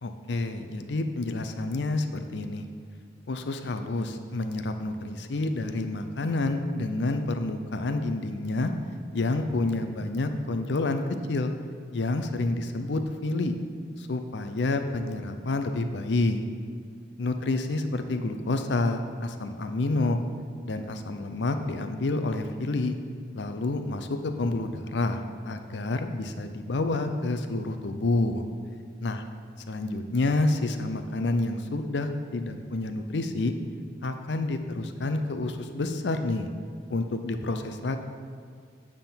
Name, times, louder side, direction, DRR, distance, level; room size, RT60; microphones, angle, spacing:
voice 1, 0.0-2.7 3.3-8.7 9.1-11.0 11.3-11.5 11.9-13.5 14.0-16.4 17.2-20.2 20.6-23.0 23.3-28.4 29.0-29.2 29.7-33.5 34.0-36.5 36.9-38.0, left 2 dB, 80° left, 7 dB, 0.5 m, -28 dB
9.0 x 3.7 x 5.7 m, 2.1 s
head